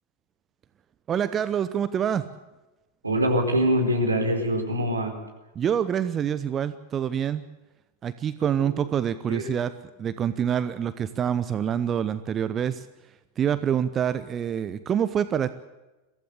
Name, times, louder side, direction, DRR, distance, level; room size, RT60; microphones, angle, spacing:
voice 1, 1.1-2.3 5.5-7.4 8.0-9.7 10.0-12.9 13.4-15.5, right 9 dB, 25° right, 13 dB, 0.8 m, -26 dB
voice 2, 3.0-5.1 8.6-8.7 9.3-9.5, equal, 80° right, 2 dB, 4.4 m, -24 dB
23.0 x 15.5 x 8.3 m, 1.1 s
figure-of-eight pair, 90°, 0 cm